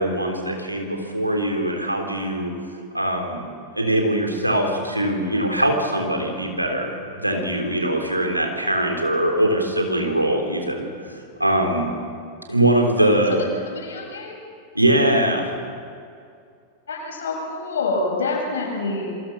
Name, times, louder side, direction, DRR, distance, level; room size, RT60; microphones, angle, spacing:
voice 1, 0.0-2.5 2.9-11.9 12.5-13.4 14.8-15.5, right 1 dB, 85° right, 2 dB, 3.5 m, -22 dB
voice 2, 13.6-14.4 16.9-19.2, left 3 dB, 65° left, -1 dB, 7.7 m, -27 dB
27.5 x 23.0 x 6.2 m, 2.4 s
figure-of-eight pair, 90°, 0 cm